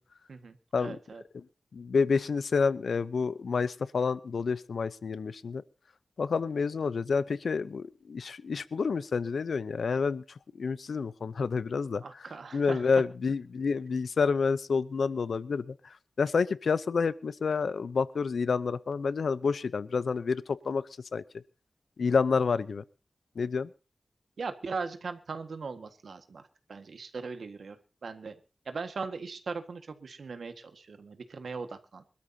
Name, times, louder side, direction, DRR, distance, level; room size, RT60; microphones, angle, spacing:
voice 1, 0.3-1.2 12.0-12.9 24.4-26.4 26.7-27.8 28.0-28.3 28.6-32.0, right 4 dB, 80° right, 8 dB, 1.6 m, -39 dB
voice 2, 1.7-5.6 6.2-10.2 10.6-12.0 12.5-15.7 16.2-20.8 21.1-21.2 22.0-22.8 23.4-23.7, left 5 dB, 85° left, 17 dB, 0.6 m, -29 dB
25.0 x 13.0 x 2.8 m, 0.31 s
wide cardioid pair, 110°, 0 cm